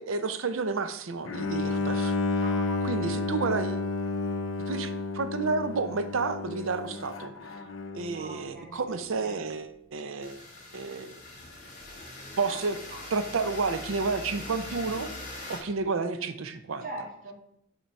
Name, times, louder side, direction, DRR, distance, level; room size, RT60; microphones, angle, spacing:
voice 1, 0.0-2.2 2.8-3.9 4.7-7.3 7.9-10.4 10.7-11.2 12.4-12.8 13.1-15.1 15.5-16.8, right 4 dB, 85° right, 11 dB, 0.6 m, -31 dB
Bowed string instrument, 1.2-8.3, left 3 dB, 70° left, 0.6 m, -31 dB
voice 2, 2.4-2.8 8.0-8.8 9.2-9.4 12.5-12.6 12.9-13.0 16.8-17.3, right 1 dB, 45° right, -3 dB, 2.1 m, -41 dB
sound 1, 10.2-15.6, left 2 dB, 40° left, 2.6 m, -42 dB
6.6 x 4.5 x 4.6 m, 0.75 s
head